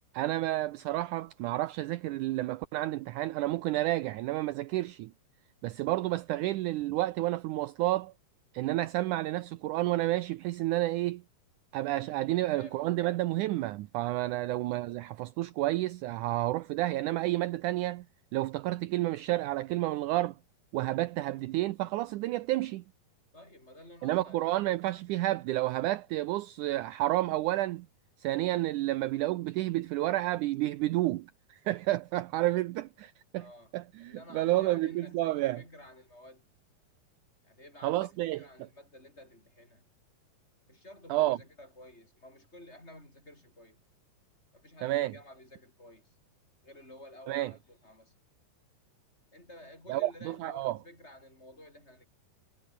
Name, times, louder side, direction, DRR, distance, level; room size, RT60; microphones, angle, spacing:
voice 1, 0.1-5.1 5.6-8.1 8.5-11.2 11.7-18.1 18.3-20.4 20.7-22.8 24.0-27.9 28.2-33.5 33.7-35.6 37.8-38.7 41.1-41.4 44.8-45.1 47.3-47.5 49.9-50.8, right 16 dB, 80° right, 1.8 m, -30 dB
voice 2, 12.2-12.9 14.3-14.4 21.2-21.5 23.3-24.5 33.3-33.7 34.0-36.5 37.4-39.9 40.7-43.8 44.5-46.1 46.6-48.1 49.3-52.1, left 1 dB, 15° left, 7.7 m, -52 dB
omnidirectional pair, 4.4 m